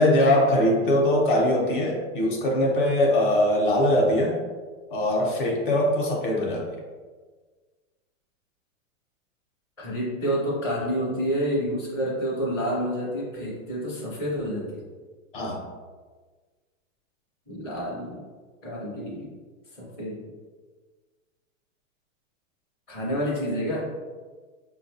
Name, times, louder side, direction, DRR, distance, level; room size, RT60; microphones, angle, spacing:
voice 1, 0.0-4.4 4.9-6.7 15.3-15.6, left 1 dB, 40° left, -1 dB, 0.7 m, -21 dB
voice 2, 9.8-14.8 17.5-18.2 18.6-19.3 19.8-20.2 22.9-23.8, equal, 5° left, -17 dB, 0.4 m, -28 dB
4.8 x 2.3 x 2.6 m, 1.4 s
supercardioid pair, 180°, 40 cm